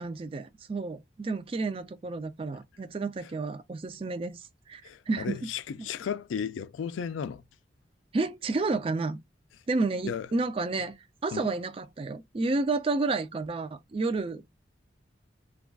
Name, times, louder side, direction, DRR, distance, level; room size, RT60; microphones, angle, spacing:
voice 1, 0.0-5.5 8.1-9.2 9.7-11.0 11.2-14.4, right 3 dB, 30° right, 0.3 m, -31 dB
voice 2, 4.8-7.4 10.0-10.3 11.3-11.5, left 7 dB, 90° left, 0.3 m, -34 dB
2.3 x 2.3 x 3.4 m
head